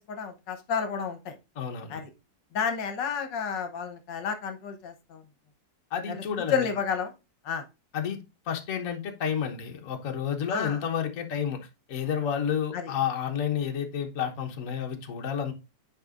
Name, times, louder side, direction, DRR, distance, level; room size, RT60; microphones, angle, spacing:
voice 1, 0.1-1.3 1.9-2.1 2.5-5.2 6.1-6.2 6.5-7.1 7.4-7.6 10.5-10.8 12.7-12.9, left 6 dB, 75° left, 1.6 m, -31 dB
voice 2, 1.6-2.0 5.9-6.7 7.9-8.2 8.5-15.5, left 8 dB, 50° left, 1.3 m, -30 dB
9.7 x 5.0 x 2.5 m
omnidirectional pair, 2.0 m